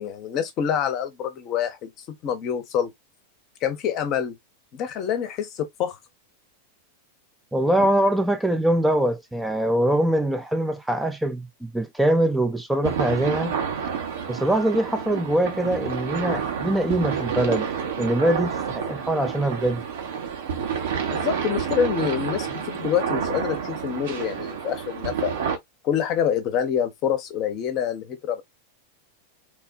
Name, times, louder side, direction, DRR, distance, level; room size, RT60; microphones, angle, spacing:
voice 1, 0.0-2.9 3.6-4.4 4.7-6.0 7.8-7.9 21.1-25.3 25.8-28.4, left 8 dB, 35° left, 0.7 m, -26 dB
voice 2, 7.5-13.5 14.3-17.7 18.0-19.8, right 1 dB, 5° right, 0.3 m, -23 dB
sound 1, 12.8-25.6, right 7 dB, 60° right, 0.8 m, -29 dB
3.2 x 2.2 x 2.4 m
figure-of-eight pair, 90°, 0 cm